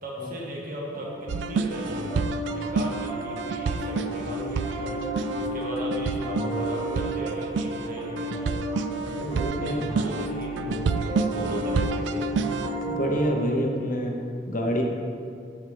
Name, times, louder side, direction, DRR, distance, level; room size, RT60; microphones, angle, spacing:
voice 1, 0.0-5.1 5.4-8.6 9.5-12.3, right 1 dB, 50° right, -3 dB, 1.9 m, -36 dB
Piano, 0.9-13.4, right 1 dB, 20° right, 1.9 m, -32 dB
sound 1, 1.3-12.8, right 5 dB, 70° right, 0.3 m, -30 dB
voice 2, 9.2-9.8 12.9-14.2 14.5-14.8, equal, 50° left, 2 dB, 1.0 m, -27 dB
12.0 x 4.8 x 5.2 m, 2.3 s
head